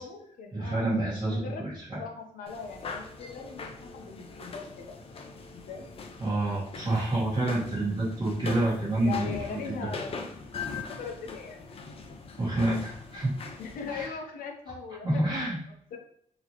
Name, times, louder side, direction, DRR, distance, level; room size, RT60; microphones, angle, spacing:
voice 1, 0.0-1.0 1.3-5.0 5.5-5.9 6.9-7.0 9.0-10.3 11.0-11.6 13.6-15.2 15.9-16.0, left 5 dB, 80° left, 2 dB, 0.8 m, -40 dB
voice 2, 0.5-1.4 1.9-2.0 6.2-9.6 12.4-13.3 13.9-14.1 15.0-15.6, right 2 dB, 30° right, -11 dB, 1.6 m, -28 dB
sound 1, 2.5-14.1, left 4 dB, 40° left, 0.6 m, -41 dB
4.1 x 3.0 x 2.9 m, 0.67 s
cardioid pair, 140°, 14 cm